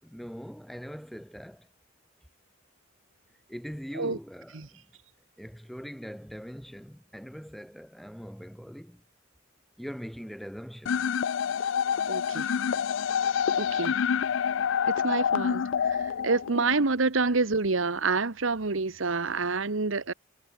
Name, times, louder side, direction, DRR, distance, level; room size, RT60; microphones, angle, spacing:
voice 1, 0.0-1.7 3.5-4.9 5.4-9.0 9.8-11.1 17.2-17.4, equal, ahead, 2.8 m, -42 dB
sound 1, 10.9-16.8, left 7 dB, 70° left, 0.4 m, -27 dB
voice 2, 12.1-12.5 13.6-13.9 14.9-20.1, right 3 dB, 75° right, 1.2 m, -28 dB
head